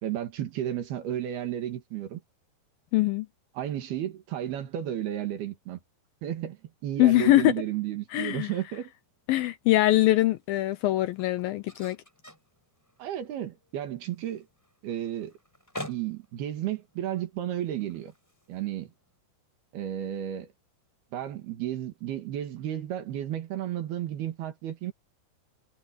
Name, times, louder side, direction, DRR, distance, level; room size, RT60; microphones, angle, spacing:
voice 1, 0.0-2.2 3.6-5.8 6.2-8.9 13.0-14.5 14.8-15.3 15.9-18.1 18.5-18.9 19.7-20.5 21.1-24.9, right 11 dB, 70° right, 3.8 m, -33 dB
voice 2, 2.9-3.3 7.0-7.5 8.1-8.5 9.3-12.0, left 16 dB, 80° left, 2.2 m, -22 dB
sound 1, 8.8-19.2, equal, 5° left, 6.7 m, -49 dB
omnidirectional pair, 4.7 m